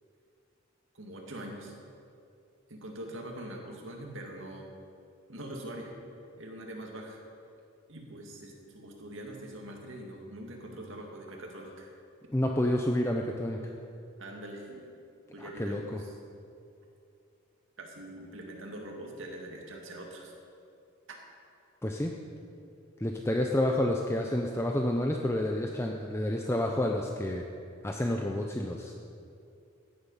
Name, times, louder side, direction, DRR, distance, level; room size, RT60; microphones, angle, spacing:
voice 1, 0.9-1.7 2.7-4.7 5.3-5.9 6.4-7.2 7.9-11.9 14.2-14.9 15.3-16.1 17.8-20.3, right 1 dB, 65° right, 0 dB, 2.2 m, -43 dB
voice 2, 12.3-13.7 15.6-15.8 21.8-22.1 23.0-27.4 27.8-28.9, left 1 dB, 10° left, 2 dB, 0.6 m, -29 dB
15.5 x 10.0 x 5.6 m, 2.5 s
head